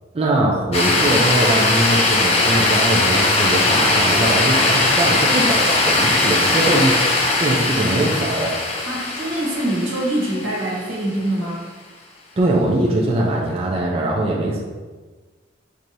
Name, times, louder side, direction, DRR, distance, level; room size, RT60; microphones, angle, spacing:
voice 1, 0.1-8.6 12.4-14.6, right 1 dB, 30° right, -2 dB, 0.4 m, -21 dB
sound 1, 0.7-11.0, left 2 dB, 30° left, 0.6 m, -19 dB
voice 2, 8.8-11.7, right 1 dB, 90° right, -5 dB, 1.2 m, -24 dB
4.7 x 2.8 x 2.6 m, 1.3 s
head